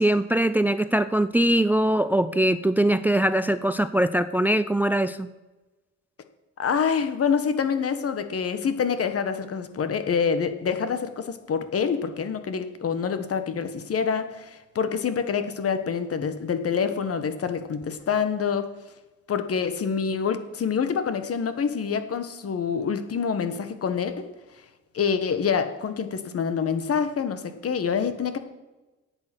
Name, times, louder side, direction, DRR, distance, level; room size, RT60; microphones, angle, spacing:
voice 1, 0.0-5.3, right 1 dB, 5° right, 13 dB, 0.5 m, -22 dB
voice 2, 6.6-18.7 19.3-24.3 24.9-28.4, left 6 dB, 50° left, 10 dB, 1.4 m, -26 dB
10.5 x 8.7 x 7.7 m, 1.1 s
cardioid pair, 90°, 30 cm